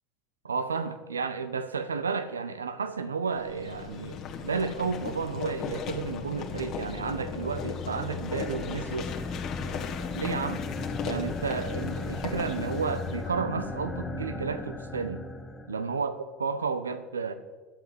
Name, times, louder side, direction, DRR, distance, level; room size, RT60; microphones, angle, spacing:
voice 1, 0.4-9.1 10.1-10.6 11.0-15.2 15.7-17.3, right 5 dB, 85° right, 11 dB, 0.8 m, -32 dB
sound 1, 3.3-13.3, left 6 dB, 50° left, 1.8 m, -38 dB
sound 2, 5.5-16.0, left 4 dB, 20° left, 1.3 m, -37 dB
12.0 x 7.9 x 7.5 m, 1.3 s
figure-of-eight pair, 75°, 0 cm